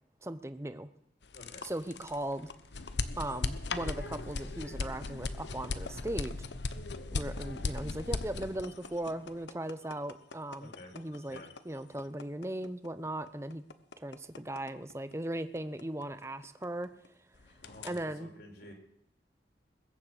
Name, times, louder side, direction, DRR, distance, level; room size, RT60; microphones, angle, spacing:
voice 1, 0.2-0.9 1.6-2.5 3.2-6.4 7.1-13.6 14.0-16.9 17.8-18.3, right 1 dB, 15° right, 11 dB, 0.8 m, -38 dB
sound 1, 1.2-17.1 17.3-18.0, left 3 dB, 85° left, 1.0 m, -38 dB
voice 2, 10.6-10.9 11.3-11.5 17.6-18.7, left 1 dB, 60° left, 1 dB, 4.7 m, -50 dB
21.0 x 7.5 x 8.2 m, 0.75 s
head